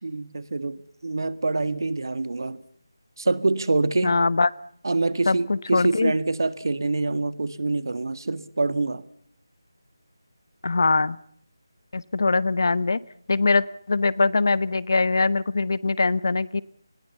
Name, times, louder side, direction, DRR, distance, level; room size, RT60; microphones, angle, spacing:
voice 1, 0.0-2.6 3.2-4.1 4.8-9.0, right 3 dB, 65° right, 15 dB, 1.7 m, -25 dB
voice 2, 4.0-4.5 5.3-6.1 10.6-11.2 11.9-13.0 13.3-16.6, left 3 dB, 55° left, 19 dB, 1.1 m, -22 dB
29.5 x 21.0 x 5.6 m, 0.65 s
figure-of-eight pair, 165°, 2 cm